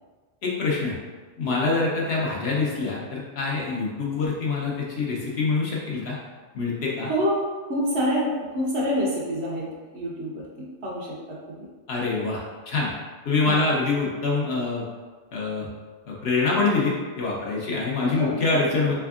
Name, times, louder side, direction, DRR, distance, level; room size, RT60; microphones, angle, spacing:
voice 1, 0.4-0.9 1.4-6.2 6.5-7.1 11.9-12.9 13.2-14.8 15.3-15.7 16.1-18.9, left 3 dB, 60° left, -4 dB, 0.9 m, -25 dB
voice 2, 7.1-9.7 9.9-11.7 13.4-13.7 18.0-18.8, equal, 60° right, -5 dB, 1.0 m, -27 dB
3.4 x 3.3 x 2.4 m, 1.4 s
omnidirectional pair, 1.3 m